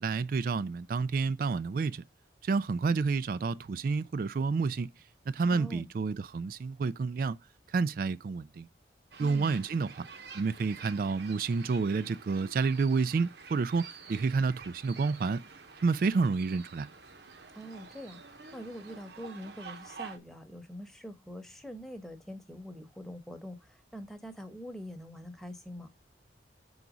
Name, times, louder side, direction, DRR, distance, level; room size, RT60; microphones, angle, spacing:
voice 1, 0.0-2.0 2.4-4.9 5.3-7.4 7.7-8.7 9.2-10.1 10.3-15.4 15.8-16.9, right 4 dB, 50° right, 0.3 m, -29 dB
voice 2, 5.5-5.9 9.2-9.5 17.5-25.9, equal, ahead, 0.9 m, -44 dB
sound 1, 9.1-20.2, right 5 dB, 65° right, 1.0 m, -49 dB
5.8 x 3.9 x 6.0 m
head